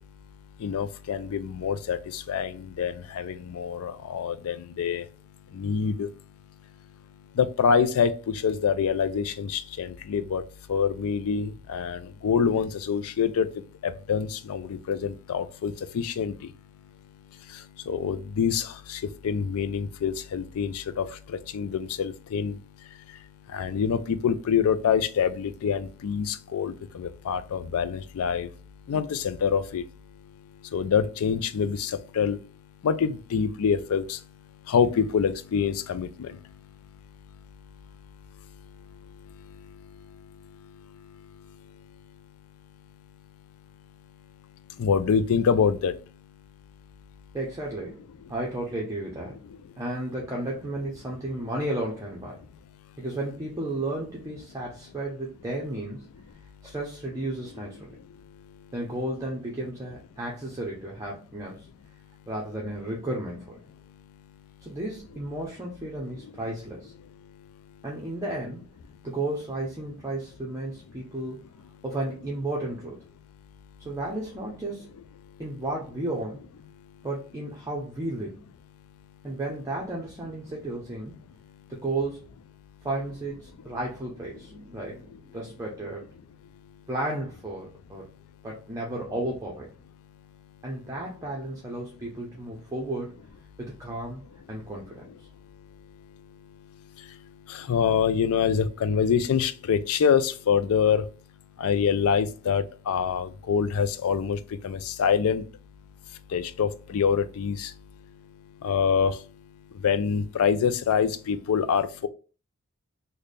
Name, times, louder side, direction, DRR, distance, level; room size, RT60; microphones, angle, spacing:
voice 1, 0.6-5.0 5.6-6.1 7.4-8.1 8.4-10.4 10.7-13.5 14.1-16.3 17.9-18.6 18.9-19.0 19.2-21.0 21.5-22.6 23.5-28.5 28.9-29.8 30.7-32.4 32.8-34.2 34.7-36.3 44.8-45.9 97.7-101.0 101.6-104.4 104.6-105.4 106.3-107.7 108.6-109.1 109.8-112.1, left 7 dB, 70° left, 0.4 m, -25 dB
voice 2, 47.3-48.0 48.3-49.4 49.8-52.4 53.0-56.1 56.6-58.0 58.7-61.7 62.3-63.6 64.6-66.9 67.8-68.7 69.0-71.5 71.8-73.0 73.8-74.9 75.4-76.4 77.0-78.4 79.2-81.2 81.7-82.3 82.8-86.1 86.9-88.1 88.4-89.7 90.6-93.2 93.6-94.2 94.5-95.1, right 1 dB, 15° right, 0.6 m, -33 dB
3.3 x 2.1 x 3.9 m
head